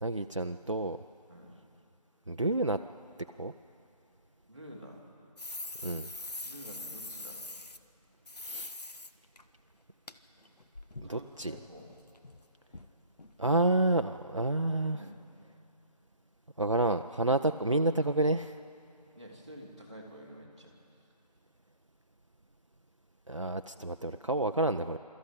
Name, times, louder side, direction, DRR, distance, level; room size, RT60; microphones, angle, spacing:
voice 1, 0.0-1.0 2.3-2.8 3.4-3.5 5.8-6.1 8.4-8.7 11.1-11.5 13.4-15.0 16.6-18.5 23.3-25.0, right 2 dB, 50° right, 7 dB, 0.5 m, -29 dB
voice 2, 4.5-5.0 6.4-7.4 11.0-12.0 14.9-15.2 19.1-20.7, equal, 10° right, -8 dB, 1.5 m, -49 dB
sound 1, 5.4-7.8 8.3-9.1 9.4-9.5 10.1-10.2 10.4-12.4 12.7-12.9 13.2-13.3 13.6-13.8 14.1-14.2, left 2 dB, 80° left, 1.1 m, -43 dB
24.0 x 13.5 x 8.3 m, 2.8 s
figure-of-eight pair, 175°, 20 cm